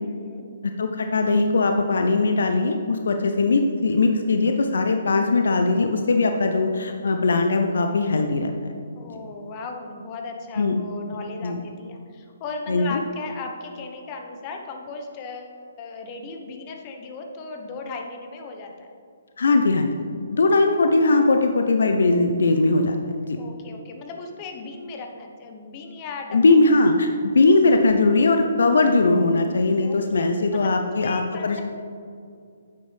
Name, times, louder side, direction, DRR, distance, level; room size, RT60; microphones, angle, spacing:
voice 1, 0.0-0.5 8.9-18.9 23.4-26.5 29.8-31.6, left 3 dB, 30° left, 3 dB, 1.0 m, -37 dB
voice 2, 0.6-8.7 10.6-10.8 11.4-11.6 12.7-13.0 19.4-23.4 26.3-31.6, left 3 dB, 65° left, 5 dB, 0.6 m, -20 dB
10.0 x 7.8 x 3.4 m, 2.3 s
figure-of-eight pair, 135°, 0 cm